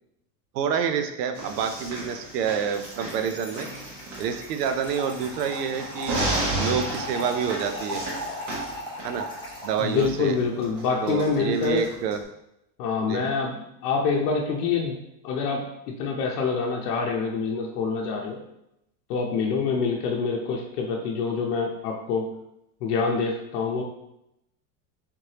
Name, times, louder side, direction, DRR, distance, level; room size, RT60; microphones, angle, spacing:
voice 1, 0.5-3.7 4.2-6.3 6.6-8.0 9.0-9.3 9.6-10.4 11.0-12.2 13.0-13.3, right 7 dB, 90° right, 8 dB, 0.6 m, -28 dB
sound 1, 1.3-12.2, right 2 dB, 35° right, 1.1 m, -34 dB
Trickle dribble / Fill (with liquid), 2.7-10.1, left 1 dB, 10° left, 0.8 m, -37 dB
voice 2, 9.8-11.9 12.8-15.0 15.2-18.4 19.1-22.3 22.8-23.8, left 5 dB, 75° left, -1 dB, 0.8 m, -26 dB
3.5 x 3.2 x 2.8 m, 0.83 s
supercardioid pair, 135°, 47 cm